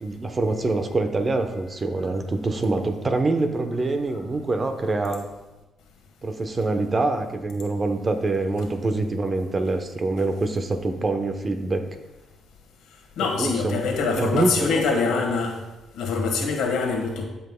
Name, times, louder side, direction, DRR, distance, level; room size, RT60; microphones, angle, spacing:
voice 1, 0.0-5.3 6.2-11.8 13.4-13.9 14.2-15.0, right 2 dB, 30° right, 6 dB, 0.8 m, -25 dB
voice 2, 13.2-15.6 15.9-17.2, left 4 dB, 85° left, 2 dB, 1.4 m, -24 dB
14.5 x 5.5 x 2.2 m, 1.1 s
cardioid pair, 90°, 0 cm